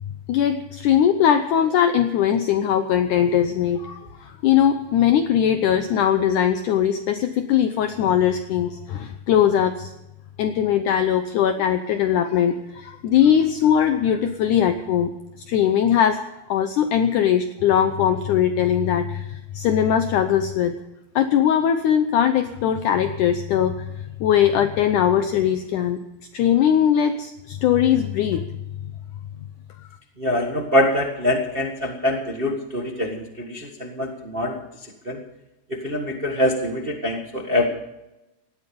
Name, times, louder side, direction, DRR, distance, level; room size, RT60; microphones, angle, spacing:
voice 1, 0.3-9.9 10.4-15.1 15.5-16.2 16.5-20.7 21.2-26.0 26.3-28.5, left 9 dB, 70° left, 8 dB, 2.1 m, -20 dB
voice 2, 30.2-35.2 35.7-37.7, left 1 dB, 40° right, 2 dB, 0.8 m, -24 dB
18.5 x 13.5 x 5.3 m, 0.94 s
omnidirectional pair, 4.2 m